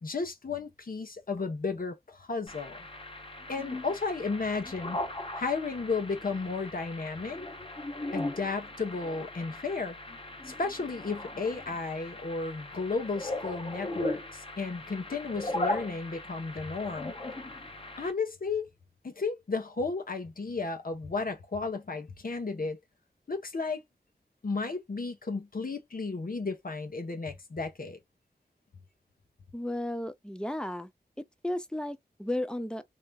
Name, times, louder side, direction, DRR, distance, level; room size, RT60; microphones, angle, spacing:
voice 1, 0.0-2.9 3.5-5.0 5.3-7.4 8.1-10.0 10.4-17.1 18.0-18.7 19.0-22.8 23.3-23.8 24.4-28.0, left 4 dB, 60° left, 1.0 m, -33 dB
sound 1, 2.5-18.1, left 1 dB, 35° left, 1.0 m, -38 dB
voice 2, 29.5-30.9 31.4-32.8, left 1 dB, 5° left, 0.5 m, -34 dB
3.4 x 2.9 x 2.4 m
wide cardioid pair, 75°, 17 cm